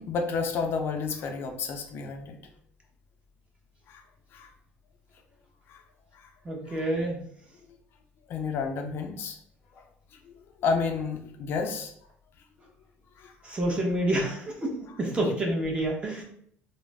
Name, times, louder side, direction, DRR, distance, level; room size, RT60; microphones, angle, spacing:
voice 1, 0.0-2.4 3.9-4.0 4.3-4.5 5.7-5.8 8.3-9.4 10.6-11.9 13.2-13.3, left 5 dB, 55° left, 4 dB, 0.4 m, -30 dB
voice 2, 6.4-7.3 13.4-16.2, right 1 dB, 20° right, -1 dB, 0.8 m, -28 dB
2.3 x 2.0 x 3.2 m, 0.63 s
cardioid pair, 115°, 5 cm